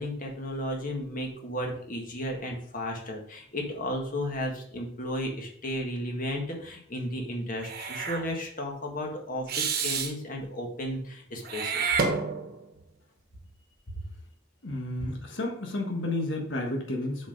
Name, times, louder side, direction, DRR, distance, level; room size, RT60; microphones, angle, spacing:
voice 1, 0.0-12.0, equal, 45° left, 1 dB, 1.7 m, -34 dB
Meow / Hiss, 7.6-8.2 9.5-10.1 11.4-12.7, right 5 dB, 55° right, 1.1 m, -29 dB
voice 2, 14.6-17.3, left 2 dB, 80° left, 1 dB, 1.4 m, -31 dB
7.2 x 4.5 x 5.2 m, 0.62 s
head